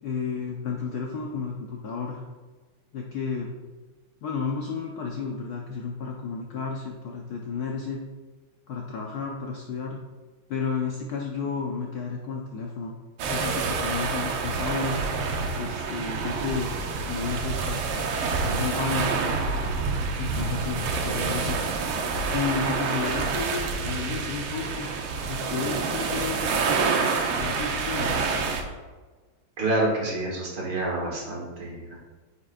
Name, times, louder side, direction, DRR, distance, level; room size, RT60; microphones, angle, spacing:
voice 1, 0.0-2.2 2.9-3.5 4.2-8.0 8.7-10.0 10.5-12.9 13.3-15.0 15.6-16.7 17.0-19.4 20.2-21.6 22.0-24.9 25.3-28.2, left 5 dB, 70° left, 0 dB, 0.9 m, -32 dB
sound 1, 13.2-28.6, right 4 dB, 75° right, 1.6 m, -27 dB
voice 2, 29.6-32.0, right 2 dB, 60° right, -3 dB, 2.2 m, -28 dB
9.5 x 5.1 x 2.5 m, 1.3 s
omnidirectional pair, 2.4 m